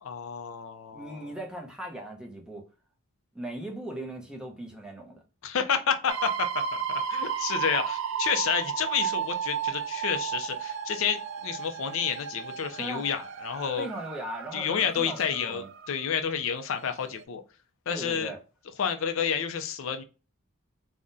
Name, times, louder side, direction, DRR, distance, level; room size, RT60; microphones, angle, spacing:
voice 1, 0.0-1.3 5.4-6.6 6.9-13.9 14.5-17.4 17.9-18.3 18.8-20.0, left 7 dB, 70° left, 0.4 m, -30 dB
voice 2, 0.9-2.7 3.3-5.2 12.8-13.1 13.8-15.7 17.9-18.4, right 1 dB, 5° right, 0.6 m, -38 dB
sound 1, 6.1-16.1 16.9-17.0 17.2-17.3, right 7 dB, 65° right, 0.3 m, -33 dB
3.6 x 2.1 x 2.5 m
head